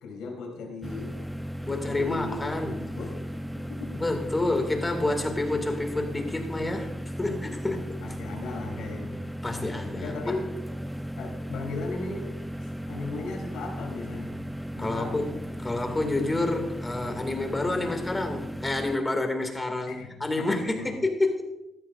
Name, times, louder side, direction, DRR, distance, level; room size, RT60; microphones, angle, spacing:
voice 1, 0.0-1.1 1.6-3.1 3.6-4.0 7.6-9.2 9.9-10.4 11.2-12.3 12.8-14.4 14.7-15.3 19.9-20.9, left 3 dB, 90° left, 1 dB, 3.3 m, -37 dB
sound 1, 0.8-19.0, equal, ahead, 0.4 m, -36 dB
voice 2, 1.6-2.8 4.0-6.9 7.2-8.0 9.4-10.3 14.8-21.4, left 2 dB, 20° left, 4 dB, 2.1 m, -29 dB
15.0 x 12.5 x 2.5 m, 0.92 s
cardioid pair, 90°, 0 cm